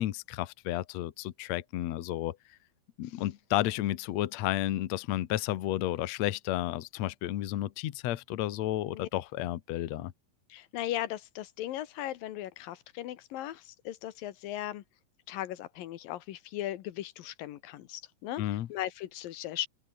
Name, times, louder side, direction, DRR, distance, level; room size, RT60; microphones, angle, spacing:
voice 1, 0.0-2.4 3.0-10.1 18.4-18.7, left 14 dB, 65° left, 2.0 m, -32 dB
voice 2, 10.5-14.8 15.3-18.4 18.7-19.7, left 13 dB, 85° left, 2.9 m, -37 dB
open air
omnidirectional pair, 3.9 m